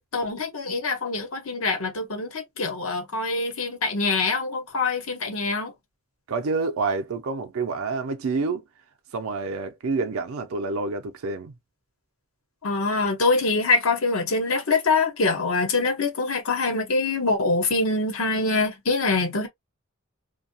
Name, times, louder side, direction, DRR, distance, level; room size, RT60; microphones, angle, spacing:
voice 1, 0.1-5.7 12.6-19.5, left 3 dB, 90° left, 1.1 m, -24 dB
voice 2, 6.3-8.6 9.1-11.5, right 4 dB, 80° right, 0.5 m, -28 dB
2.6 x 2.3 x 2.7 m
head